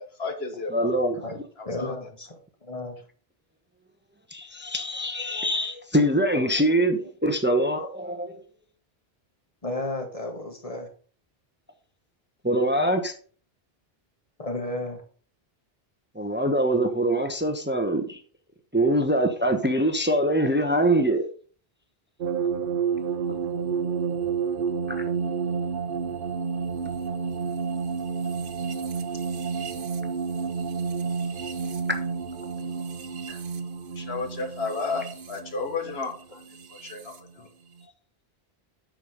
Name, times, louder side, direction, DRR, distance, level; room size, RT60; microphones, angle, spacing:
voice 1, 0.0-0.9 1.6-2.0 33.9-37.5, left 4 dB, 80° left, 1.7 m, -33 dB
voice 2, 0.7-1.4 4.3-8.4 12.4-13.1 16.1-18.2 18.7-21.3 24.9-25.0, right 1 dB, 10° right, 0.9 m, -24 dB
voice 3, 1.6-3.0 9.6-10.9 14.4-15.0 33.3-33.4, left 2 dB, 35° left, 1.8 m, -33 dB
sound 1, 22.2-37.2, right 6 dB, 60° right, 1.0 m, -30 dB
8.8 x 6.2 x 5.1 m
omnidirectional pair, 1.0 m